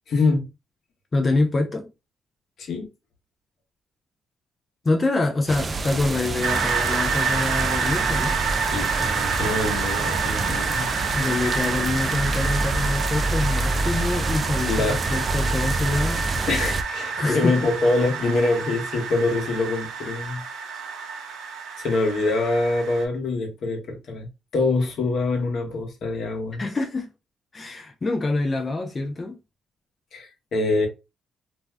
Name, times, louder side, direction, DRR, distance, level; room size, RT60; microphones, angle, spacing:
voice 1, 0.1-0.4 2.6-2.9 8.7-10.9 14.7-15.0 16.5-20.4 21.8-24.3 24.5-26.6 30.1-30.9, left 3 dB, 65° left, 1.0 m, -24 dB
voice 2, 1.1-1.9 4.8-8.4 11.1-16.2 17.2-17.6 26.6-27.1 27.5-29.4, left 2 dB, 30° left, 0.5 m, -25 dB
sound 1, 5.5-16.8, right 2 dB, 35° right, 0.4 m, -27 dB
sound 2, 6.4-23.0, right 5 dB, 85° right, 0.7 m, -28 dB
2.6 x 2.2 x 3.3 m
cardioid pair, 90°, 0 cm